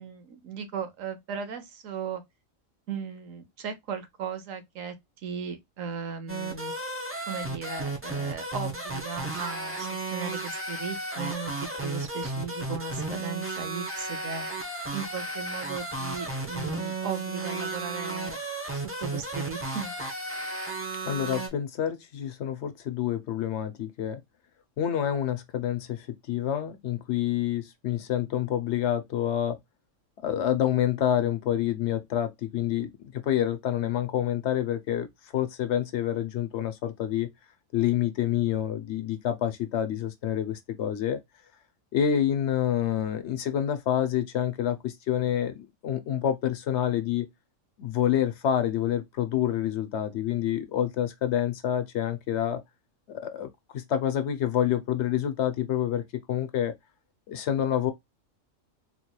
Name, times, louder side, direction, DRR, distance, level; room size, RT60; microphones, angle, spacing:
voice 1, 0.0-2.2 2.9-5.0 5.2-6.7 7.3-14.5 14.9-18.4 18.7-19.9, right 6 dB, 80° right, 1.2 m, -37 dB
sound 1, 6.3-21.5, right 2 dB, 15° right, 0.6 m, -34 dB
voice 2, 21.1-24.2 24.8-29.6 30.2-35.1 35.3-37.3 37.7-41.2 41.9-47.3 47.8-52.6 53.1-53.5 53.7-56.7 57.3-57.9, left 10 dB, 65° left, 0.8 m, -27 dB
3.9 x 3.0 x 2.2 m
omnidirectional pair, 1.4 m